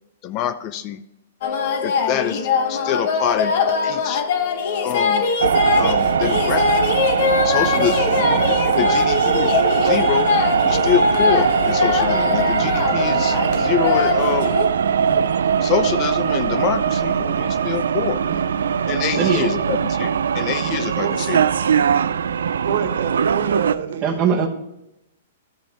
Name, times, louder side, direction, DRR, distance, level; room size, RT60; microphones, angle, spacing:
voice 1, 0.2-1.0 1.8-3.5 3.8-4.2 4.8-5.3 5.8-6.7 7.4-10.3 10.6-14.5 15.6-18.2 18.9-21.5, left 10 dB, 35° left, 12 dB, 0.5 m, -26 dB
sound 1, 1.4-14.7, left 5 dB, 60° left, 1.2 m, -22 dB
sound 2, 5.4-23.7, right 7 dB, 90° right, 0.4 m, -20 dB
voice 2, 7.8-8.3 8.8-9.5 19.3-19.8 21.0-21.2 22.6-24.5, right 7 dB, 70° right, 7 dB, 1.4 m, -28 dB
voice 3, 19.1-19.4 24.0-24.5, right 7 dB, 25° right, -2 dB, 1.1 m, -22 dB
13.0 x 5.2 x 3.4 m, 0.90 s
hypercardioid pair, 150°, 0 cm